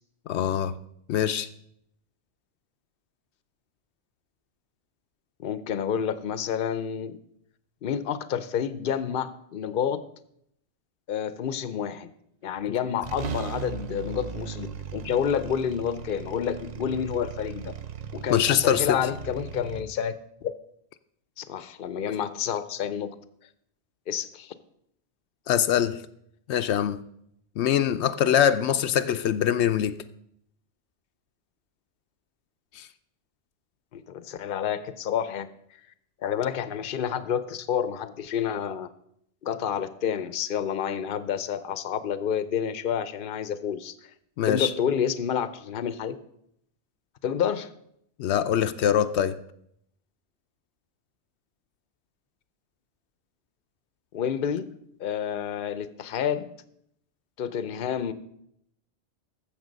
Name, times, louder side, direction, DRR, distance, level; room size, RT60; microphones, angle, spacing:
voice 1, 0.3-0.8 1.1-1.5 18.3-19.0 25.5-26.0 26.5-27.0 27.6-30.0 32.7-32.9 44.4-44.7 48.2-49.4, left 9 dB, 85° left, 0.9 m, -23 dB
voice 2, 5.4-7.2 7.8-10.0 11.1-12.1 12.4-14.7 14.9-17.7 18.1-20.2 20.4-20.5 21.4-23.1 24.1-24.5 33.9-35.5 36.2-38.9 39.4-44.1 44.4-46.2 47.2-47.7 54.1-54.7 55.0-56.5 57.4-58.1, left 8 dB, 55° left, 0.8 m, -29 dB
sound 1, 12.6-12.7 13.0-19.8, right 6 dB, 50° right, 0.6 m, -37 dB
14.5 x 6.7 x 5.2 m
omnidirectional pair, 1.1 m